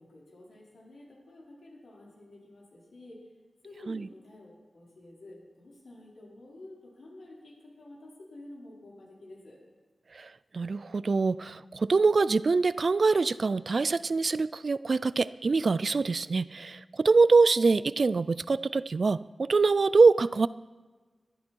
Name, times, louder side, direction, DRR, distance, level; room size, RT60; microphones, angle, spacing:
voice 1, 0.0-3.2 3.6-9.6, left 1 dB, 85° left, -4 dB, 5.0 m, -50 dB
voice 2, 10.5-20.5, right 4 dB, 55° right, 18 dB, 0.4 m, -24 dB
21.5 x 12.5 x 4.6 m, 1.3 s
wide cardioid pair, 125°, 0 cm